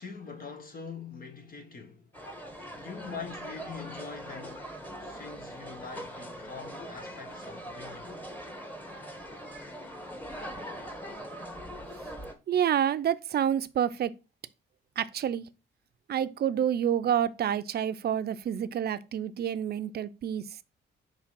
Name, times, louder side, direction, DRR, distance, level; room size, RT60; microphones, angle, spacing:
voice 1, 0.0-2.2 2.7-4.7 5.0-8.2, left 5 dB, 45° left, 1.3 m, -43 dB
sound 1, 2.1-12.3, equal, 10° left, 1.5 m, -42 dB
voice 2, 12.5-14.1 15.0-15.4 16.1-20.4, right 9 dB, 55° right, 0.5 m, -28 dB
5.8 x 3.4 x 5.8 m
cardioid pair, 90°, 20 cm